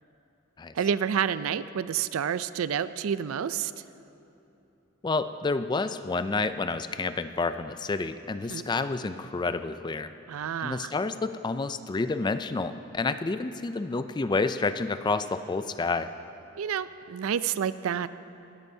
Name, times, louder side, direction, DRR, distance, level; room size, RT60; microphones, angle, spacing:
voice 1, 0.7-3.7 8.5-8.7 10.3-10.9 16.6-18.1, right 8 dB, 80° right, 15 dB, 0.4 m, -29 dB
voice 2, 5.0-10.1 10.6-16.1, left 3 dB, 20° left, 11 dB, 0.3 m, -29 dB
19.5 x 13.5 x 2.7 m, 2.8 s
head